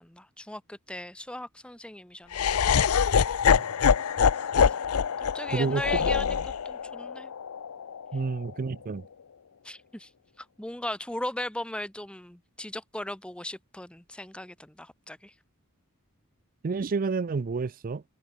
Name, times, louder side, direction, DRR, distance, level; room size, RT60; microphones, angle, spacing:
voice 1, 0.0-2.4 5.2-6.2 6.6-7.3 9.6-10.1 10.4-15.3, left 1 dB, 5° left, 0.8 m, -38 dB
Laughter, 2.3-8.5, left 7 dB, 75° left, 0.5 m, -25 dB
voice 2, 5.5-6.1 8.1-9.1 16.6-18.0, right 4 dB, 40° right, 0.4 m, -29 dB
head